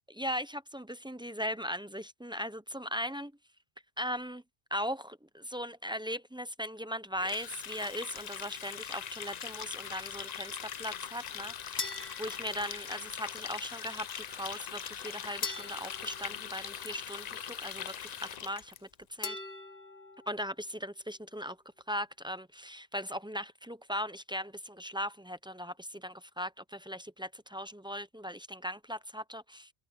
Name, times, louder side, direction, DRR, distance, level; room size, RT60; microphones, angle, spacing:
voice 1, 0.2-3.3 4.0-4.4 4.7-11.8 12.2-19.4 20.3-21.6 21.9-29.7, equal, 10° right, 0.3 m, -38 dB
Water tap faucet, 7.2-18.8, left 8 dB, 50° left, 0.6 m, -41 dB
sound 1, 11.8-13.3 15.4-17.3 19.2-20.4, left 4 dB, 85° left, 1.9 m, -42 dB
omnidirectional pair, 1.1 m